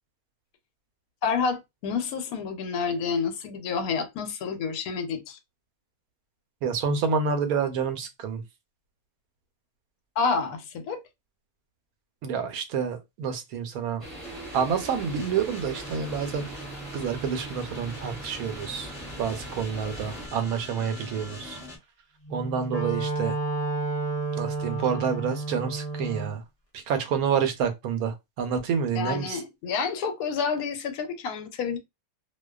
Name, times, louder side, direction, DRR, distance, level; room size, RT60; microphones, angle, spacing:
voice 1, 1.2-5.4 10.2-11.0 28.9-31.8, left 5 dB, 90° left, 1.1 m, -29 dB
voice 2, 6.6-8.4 12.2-14.0 14.5-16.4 16.9-18.9 19.2-21.6 22.3-23.3 24.3-26.4 26.7-29.4, right 6 dB, 80° right, 1.0 m, -28 dB
sound 1, 14.0-20.3, right 1 dB, 20° right, 1.0 m, -42 dB
sound 2, 14.2-21.8, right 1 dB, 5° right, 0.5 m, -42 dB
Wind instrument woodwind instrument, 22.2-26.4, right 3 dB, 40° left, 0.7 m, -31 dB
2.5 x 2.2 x 2.2 m
omnidirectional pair, 1.5 m